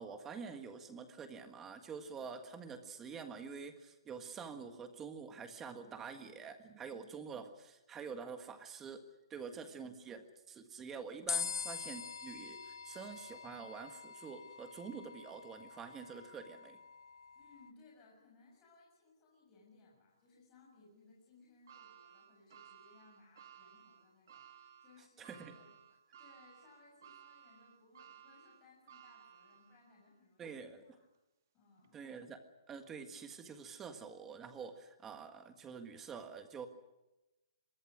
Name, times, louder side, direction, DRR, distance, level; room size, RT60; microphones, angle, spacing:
voice 1, 0.0-9.0 9.3-16.8 25.2-25.5 30.4-30.8 31.9-32.4 32.7-36.7, right 6 dB, 10° right, 8 dB, 1.6 m, -47 dB
sound 1, 11.3-17.7, left 7 dB, 65° left, 1.0 m, -44 dB
voice 2, 17.3-30.5 30.8-31.0 31.5-32.0, left 3 dB, 15° left, -3 dB, 6.8 m, -64 dB
sound 2, 21.7-30.0 30.5-30.6 31.8-31.9, right 9 dB, 45° right, 2.0 m, -59 dB
26.0 x 23.5 x 6.3 m, 1.0 s
hypercardioid pair, 175°, 2 cm